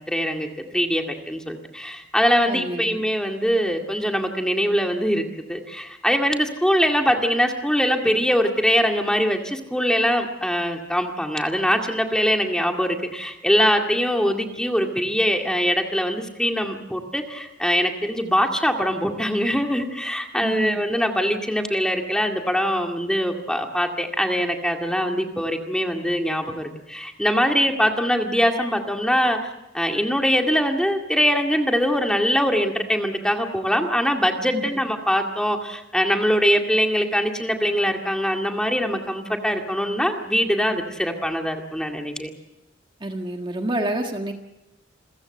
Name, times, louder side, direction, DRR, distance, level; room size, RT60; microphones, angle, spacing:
voice 1, 0.0-29.4 29.7-42.3, equal, 5° left, 3 dB, 2.1 m, -22 dB
voice 2, 2.5-3.0 20.4-20.8 34.5-34.7 43.0-44.3, right 1 dB, 25° right, 3 dB, 1.7 m, -28 dB
28.0 x 15.5 x 7.7 m, 0.93 s
head